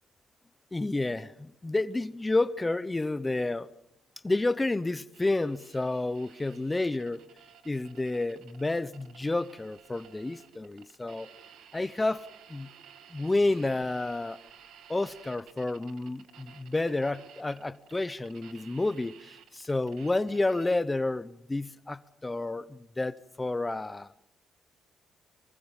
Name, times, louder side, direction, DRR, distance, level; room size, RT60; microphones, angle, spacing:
voice 1, 0.7-3.7 4.2-7.2 7.6-11.3 11.7-12.7 13.1-14.4 14.9-24.1, left 2 dB, 15° left, 0.8 m, -30 dB
sound 1, 5.1-20.8, right 9 dB, 80° right, 2.0 m, -55 dB
24.5 x 19.0 x 7.2 m
cardioid pair, 90°, 0 cm